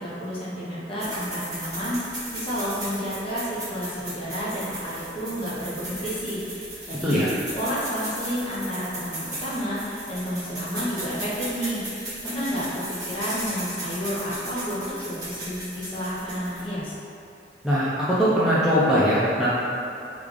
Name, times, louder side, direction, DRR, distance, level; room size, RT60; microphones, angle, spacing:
voice 1, 0.0-17.0, equal, 30° left, -8 dB, 0.8 m, -31 dB
sound 1, 1.0-16.8, right 1 dB, 20° right, 1.0 m, -36 dB
voice 2, 17.6-19.5, equal, 5° right, -11 dB, 0.4 m, -21 dB
3.2 x 2.4 x 3.6 m, 2.6 s
head